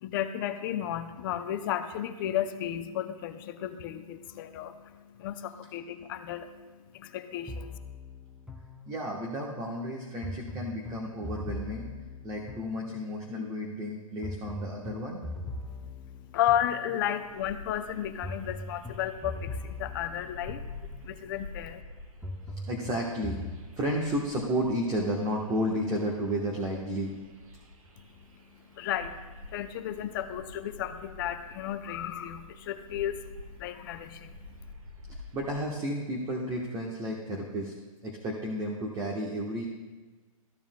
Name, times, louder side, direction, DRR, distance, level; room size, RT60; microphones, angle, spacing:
voice 1, 0.0-7.7 15.6-21.8 28.0-34.7, left 11 dB, 35° left, 9 dB, 0.5 m, -34 dB
sound 1, 7.5-9.4 10.2-13.3 14.2-17.3 18.2-21.3 22.2-23.6, left 2 dB, ahead, 0.7 m, -41 dB
voice 2, 8.9-11.9 12.2-15.2 22.7-23.4 23.8-27.2 35.1-37.7 38.0-39.7, equal, 20° right, -1 dB, 1.1 m, -32 dB
sound 2, 17.2-35.7, left 2 dB, 70° right, 1.6 m, -48 dB
14.0 x 7.0 x 2.2 m, 1.3 s
hypercardioid pair, 135°, 18 cm